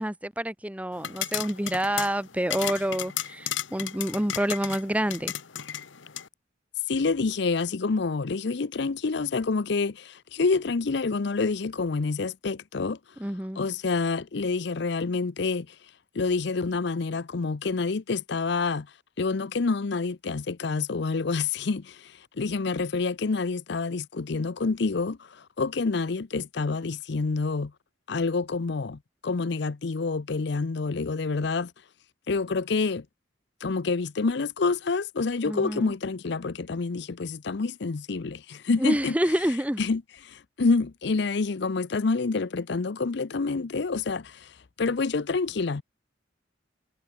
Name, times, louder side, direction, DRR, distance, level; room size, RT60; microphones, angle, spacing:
voice 1, 0.0-5.3 13.2-13.6 35.5-35.9 38.8-39.8, right 1 dB, 5° right, 1.0 m, -28 dB
sound 1, 0.9-6.3, left 11 dB, 85° left, 1.2 m, -34 dB
voice 2, 6.9-13.0 13.6-15.7 16.1-18.9 19.2-27.7 28.1-31.7 32.3-33.0 33.6-39.2 39.8-45.8, left 4 dB, 65° left, 0.6 m, -28 dB
head